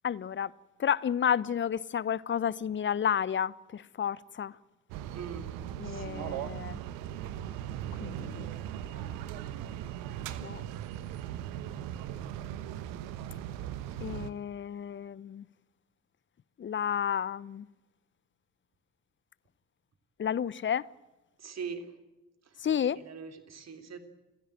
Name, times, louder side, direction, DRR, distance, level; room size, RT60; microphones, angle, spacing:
voice 1, 0.0-0.5 0.8-4.6 5.8-6.8 8.0-8.5 10.4-10.6 14.0-15.5 16.6-17.7 20.2-20.9 22.6-23.0, left 8 dB, 30° left, 0.8 m, -31 dB
sound 1, 4.9-14.3, right 11 dB, 65° right, 1.3 m, -38 dB
voice 2, 5.1-5.5 5.8-6.3 21.4-21.9 22.4-22.7 22.9-24.0, right 6 dB, 45° right, 3.4 m, -42 dB
28.0 x 16.0 x 9.0 m
figure-of-eight pair, 45°, 37 cm